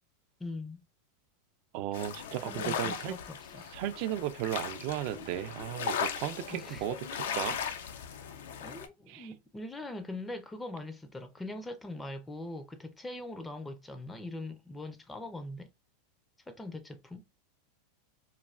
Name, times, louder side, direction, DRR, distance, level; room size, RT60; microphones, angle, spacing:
voice 1, 0.4-0.8 2.4-3.6 6.5-6.8 8.6-15.7 16.5-17.2, left 2 dB, 10° left, 0.4 m, -42 dB
voice 2, 1.7-3.1 3.7-7.6 9.1-9.3, right 13 dB, 55° right, 0.3 m, -35 dB
sound 1, 1.9-8.9, left 7 dB, 80° left, 0.4 m, -37 dB
3.1 x 2.2 x 2.3 m
hypercardioid pair, 110°, 0 cm